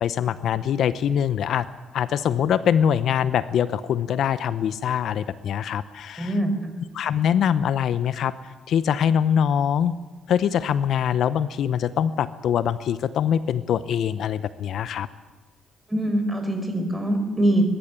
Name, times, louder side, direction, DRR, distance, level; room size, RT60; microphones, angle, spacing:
voice 1, 0.0-1.7 1.9-6.3 6.9-10.0 10.3-15.1, left 8 dB, 70° left, 14 dB, 0.8 m, -23 dB
voice 2, 6.2-6.8 15.9-17.6, right 1 dB, 10° right, 5 dB, 5.0 m, -23 dB
22.5 x 12.0 x 10.0 m, 1.2 s
cardioid pair, 90°, 0 cm